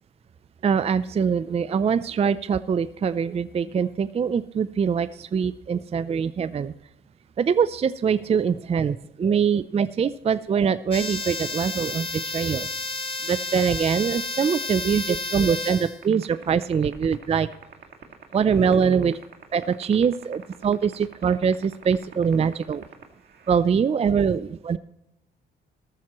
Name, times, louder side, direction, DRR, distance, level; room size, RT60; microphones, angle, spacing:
voice 1, 0.6-6.7 7.4-12.7 13.2-17.5 18.3-19.2 19.5-22.8 23.5-24.8, right 6 dB, 30° right, 15 dB, 0.4 m, -23 dB
sound 1, 10.9-16.0, left 3 dB, 25° left, 1.2 m, -31 dB
sound 2, 16.0-23.6, right 8 dB, 55° right, 2.0 m, -42 dB
13.5 x 13.0 x 3.0 m, 0.86 s
cardioid pair, 90°, 20 cm